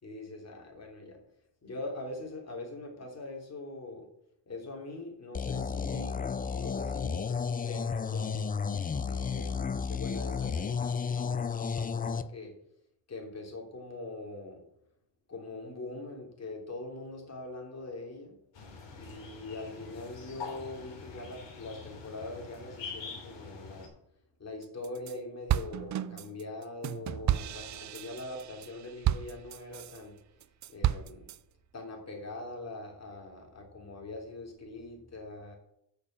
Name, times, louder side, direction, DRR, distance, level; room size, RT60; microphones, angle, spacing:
voice 1, 0.0-1.2 1.6-4.1 4.5-8.4 9.0-12.5 13.1-14.6 15.3-18.4 19.0-23.9 24.4-30.1 30.7-31.3 31.7-35.6, left 2 dB, 35° left, 1 dB, 3.1 m, -43 dB
sound 1, 5.3-12.2, left 6 dB, 20° left, 0.4 m, -32 dB
sound 2, 18.5-23.9, left 5 dB, 75° left, 3.2 m, -45 dB
sound 3, 24.6-25.1 25.5-30.0 30.4-31.4, right 12 dB, 45° right, 0.4 m, -32 dB
6.9 x 6.7 x 7.1 m, 0.74 s
cardioid pair, 100°, 43 cm